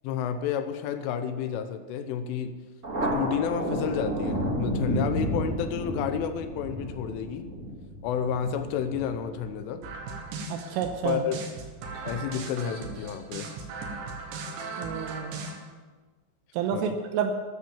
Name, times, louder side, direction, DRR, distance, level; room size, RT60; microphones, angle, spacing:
voice 1, 0.0-2.6 3.1-7.5 8.0-9.8 11.0-11.4 12.0-13.5 16.7-17.0, left 8 dB, 80° left, 9 dB, 3.2 m, -30 dB
Thunder, 2.8-9.9, equal, 25° right, 1.7 m, -31 dB
sound 1, 9.8-15.6, right 3 dB, 70° right, 3.7 m, -38 dB
voice 2, 10.5-11.2 14.8-15.3 16.5-17.3, right 7 dB, 85° right, 5 dB, 3.4 m, -29 dB
13.0 x 11.5 x 7.1 m, 1.4 s
omnidirectional pair, 5.9 m